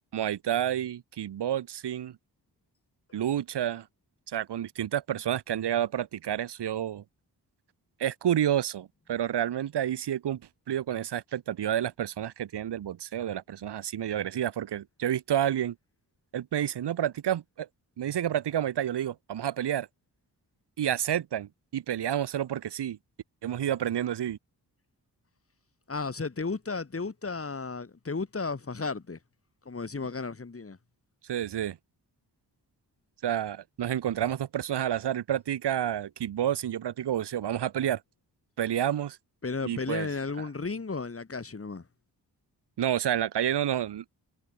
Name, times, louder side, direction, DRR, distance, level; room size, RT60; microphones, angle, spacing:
voice 1, 0.1-2.2 3.1-3.9 4.3-7.0 8.0-10.4 10.7-15.7 16.3-17.7 18.0-19.9 20.8-23.0 23.4-24.4 31.3-31.8 33.2-38.0 38.6-39.2 39.6-40.1 42.8-44.0, right 10 dB, 75° right, 1.0 m, -29 dB
voice 2, 25.9-29.2 29.7-30.8 39.4-41.8, left 4 dB, 30° left, 2.3 m, -34 dB
cardioid pair, 50°, 42 cm